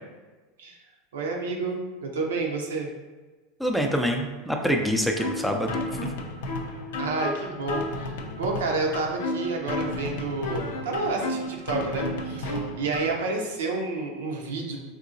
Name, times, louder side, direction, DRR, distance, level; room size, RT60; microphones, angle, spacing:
voice 1, 1.1-2.9 7.0-14.8, right 3 dB, 90° right, 0 dB, 0.6 m, -30 dB
voice 2, 3.6-5.8, equal, ahead, 2 dB, 0.4 m, -25 dB
sound 1, 5.2-13.2, left 1 dB, 80° left, 0.5 m, -32 dB
3.7 x 2.7 x 2.6 m, 1.3 s
supercardioid pair, 110°, 0 cm